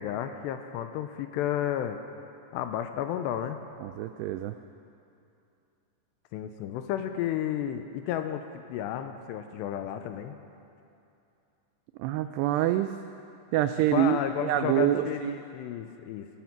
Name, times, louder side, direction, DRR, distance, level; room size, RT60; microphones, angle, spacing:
voice 1, 0.0-2.0 2.5-3.6 6.3-10.4 13.9-16.3, left 10 dB, 80° left, 8 dB, 2.6 m, -32 dB
voice 2, 3.8-4.6 12.0-12.9 13.5-15.4, right 12 dB, 90° right, 10 dB, 2.3 m, -26 dB
18.0 x 13.5 x 5.9 m, 2.7 s
omnidirectional pair, 5.3 m